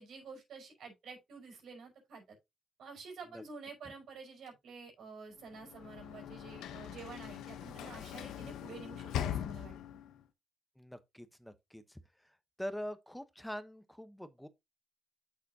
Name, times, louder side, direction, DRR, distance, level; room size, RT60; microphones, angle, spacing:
voice 1, 0.0-2.2 2.8-10.0, right 4 dB, 70° right, 5.1 m, -50 dB
Sliding door / Slam, 5.5-10.2, left 10 dB, 85° left, 0.9 m, -41 dB
voice 2, 10.8-12.0 12.2-14.5, equal, 5° left, 1.0 m, -44 dB
8.2 x 6.8 x 2.8 m
cardioid pair, 90°, 0 cm